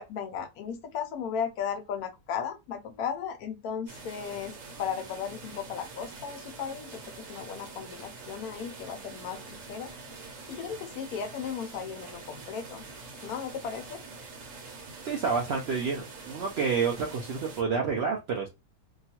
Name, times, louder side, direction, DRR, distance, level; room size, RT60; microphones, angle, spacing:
voice 1, 0.0-12.8 13.2-14.0, left 7 dB, 75° left, 1.0 m, -36 dB
sound 1, 3.9-17.6, right 4 dB, 60° right, 1.0 m, -45 dB
voice 2, 15.0-18.5, right 5 dB, 80° right, 0.5 m, -29 dB
2.8 x 2.3 x 2.8 m
omnidirectional pair, 1.7 m